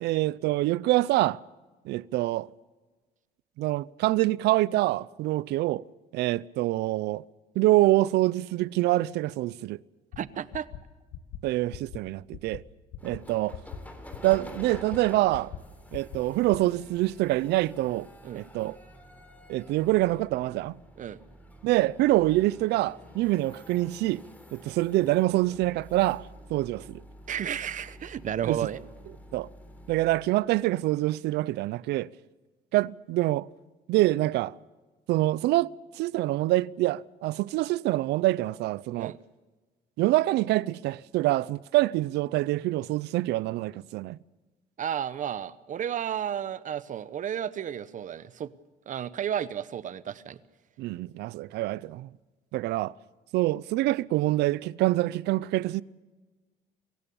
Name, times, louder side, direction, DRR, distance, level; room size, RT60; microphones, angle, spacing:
voice 1, 0.0-1.4 1.8-2.5 3.6-5.8 6.1-7.2 7.6-9.8 11.4-12.6 13.0-13.6 14.2-15.5 15.9-18.1 18.3-18.8 19.5-20.8 21.6-24.2 24.5-27.0 28.4-28.6 29.3-29.5 29.9-32.1 32.7-33.5 33.9-34.5 35.1-39.1 40.0-44.2 50.8-52.1 52.5-52.9 53.3-55.8, right 17 dB, 80° right, 0.5 m, -25 dB
sound 1, 10.1-10.2 10.5-10.8 11.1-11.4 11.7-12.0 12.3-12.6 12.9-13.2 13.5-13.8 14.1-14.4 14.7-15.0 15.3-15.6 15.9-16.2 16.5-16.6, left 12 dB, 80° left, 1.4 m, -40 dB
voice 2, 10.2-10.7 18.2-18.4 21.0-21.2 27.3-28.8 39.0-39.2 44.8-48.5 48.9-50.4, right 9 dB, 50° right, 0.9 m, -32 dB
sound 2, 13.0-30.3, equal, 10° left, 3.6 m, -49 dB
26.0 x 16.0 x 7.1 m
cardioid pair, 110°, 17 cm